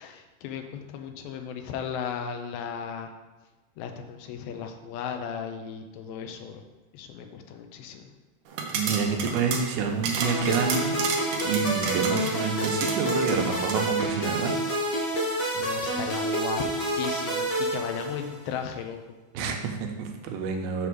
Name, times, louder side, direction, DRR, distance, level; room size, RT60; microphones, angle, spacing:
voice 1, 0.0-3.1 3.8-6.6 6.9-8.1 15.1-16.6 17.0-19.2, left 7 dB, 80° left, 5 dB, 2.4 m, -36 dB
sound 1, 8.5-13.8, right 5 dB, 75° right, 2.2 m, -32 dB
voice 2, 8.7-14.5 19.3-20.9, right 5 dB, 90° right, 3 dB, 2.7 m, -28 dB
sound 2, 10.2-18.5, right 1 dB, 45° left, 1.4 m, -28 dB
6.9 x 3.4 x 6.1 m, 1.1 s
omnidirectional pair, 4.2 m